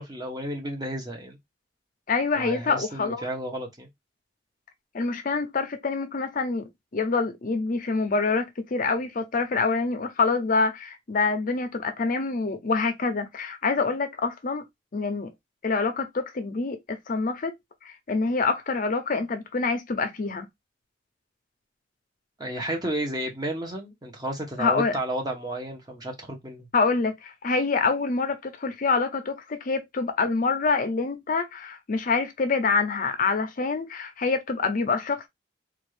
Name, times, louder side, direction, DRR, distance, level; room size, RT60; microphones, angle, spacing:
voice 1, 0.0-1.4 2.3-3.9 22.4-26.7, right 1 dB, 20° right, 1.0 m, -32 dB
voice 2, 2.1-3.2 4.9-6.7 6.9-8.5 8.7-14.6 14.9-15.3 15.6-16.8 17.1-17.5 17.8-20.5 24.6-24.9 26.7-35.3, left 4 dB, 50° left, 0.6 m, -26 dB
3.3 x 2.4 x 3.2 m
head